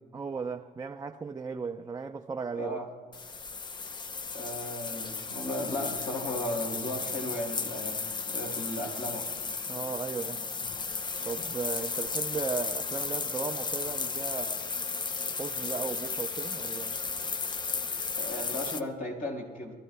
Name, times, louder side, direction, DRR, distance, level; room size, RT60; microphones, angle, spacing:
voice 1, 0.1-2.8 9.7-10.4 11.2-14.8 15.4-17.0, right 5 dB, 20° right, 0.6 m, -36 dB
voice 2, 2.5-2.9 4.3-9.3 18.2-19.7, left 1 dB, 55° left, 4.7 m, -35 dB
sound 1, 3.1-18.8, left 4 dB, 25° left, 0.6 m, -34 dB
26.0 x 14.5 x 2.2 m
cardioid pair, 110°, 17 cm